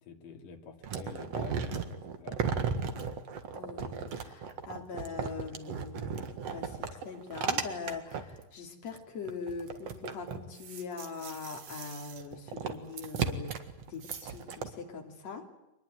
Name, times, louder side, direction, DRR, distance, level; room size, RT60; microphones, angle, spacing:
voice 1, 0.0-2.5, left 6 dB, 65° left, 3 dB, 4.2 m, -47 dB
sound 1, 0.8-8.4 9.0-9.1 9.3-14.7, right 6 dB, 50° right, 2.4 m, -35 dB
voice 2, 3.5-15.5, left 5 dB, 50° left, 3 dB, 3.9 m, -42 dB
25.5 x 21.0 x 9.3 m, 0.92 s
omnidirectional pair, 4.3 m